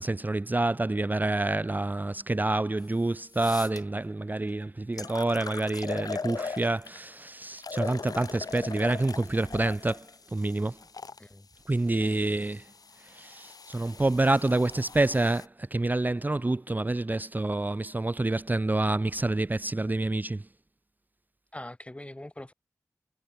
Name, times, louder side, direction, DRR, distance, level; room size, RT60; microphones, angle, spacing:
voice 1, 0.0-10.1 10.3-10.8 11.7-12.7 13.0-20.5, right 2 dB, 30° right, 0.7 m, -28 dB
sound 1, 2.8-2.9 3.3-3.8 4.5-4.6 5.0-7.1 7.6-11.2 12.0-15.5, left 4 dB, 75° left, 2.5 m, -40 dB
voice 2, 21.5-22.5, left 1 dB, 20° left, 2.0 m, -43 dB
cardioid pair, 45°, 6 cm